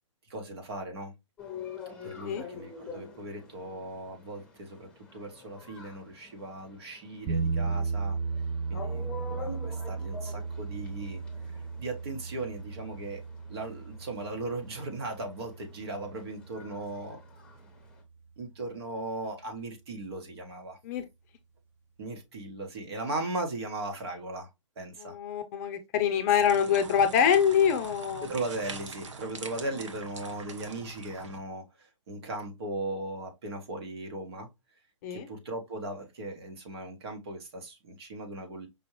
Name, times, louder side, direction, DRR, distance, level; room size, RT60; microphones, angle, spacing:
voice 1, 0.3-1.1 1.8-8.2 8.7-11.2 11.5-13.2 13.5-17.2 18.4-20.8 22.0-24.5 24.8-25.1 28.2-34.5 35.1-38.7, right 2 dB, 55° right, 1.5 m, -38 dB
sound 1, 1.4-18.0, left 4 dB, 5° left, 1.1 m, -47 dB
sound 2, 7.3-17.3, right 4 dB, 15° right, 0.7 m, -35 dB
voice 2, 25.0-28.3 35.0-35.3, left 8 dB, 30° left, 0.6 m, -25 dB
sound 3, 26.4-31.4, right 4 dB, 70° right, 1.0 m, -43 dB
5.4 x 2.5 x 3.1 m
hypercardioid pair, 135°, 16 cm